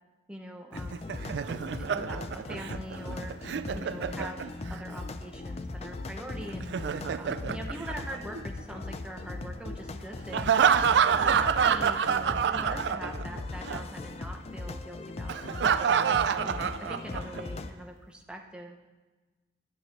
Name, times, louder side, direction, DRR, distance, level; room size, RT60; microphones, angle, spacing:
voice 1, 0.3-1.0 1.7-3.3 3.7-4.4 4.7-6.7 7.2-10.5 10.9-15.9 16.4-18.8, right 1 dB, 5° right, 1 dB, 0.7 m, -43 dB
sound 1, 0.7-17.7, left 2 dB, 35° left, 0.4 m, -39 dB
Laughter, 0.7-4.8 6.5-8.6 10.3-13.4 13.7-13.8 15.3-17.4, right 7 dB, 75° right, 0.3 m, -27 dB
11.0 x 8.5 x 3.4 m, 1.2 s
head